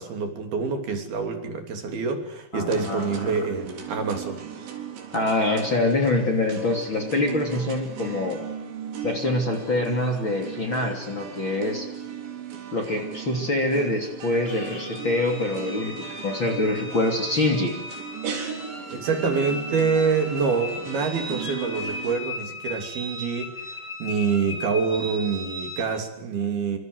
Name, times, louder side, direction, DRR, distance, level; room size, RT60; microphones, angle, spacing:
voice 1, 0.0-4.4 18.9-23.5 24.0-26.8, right 5 dB, 60° right, 5 dB, 4.8 m, -26 dB
voice 2, 2.5-3.3 5.1-8.4 9.0-11.9 12.7-15.9 16.2-17.8, left 2 dB, 30° left, 3 dB, 3.1 m, -25 dB
sound 1, 2.7-22.1, right 7 dB, 90° right, 6.2 m, -38 dB
sound 2, 14.4-25.8, left 2 dB, 15° left, 2.9 m, -37 dB
26.5 x 26.5 x 8.0 m, 0.75 s
omnidirectional pair, 5.2 m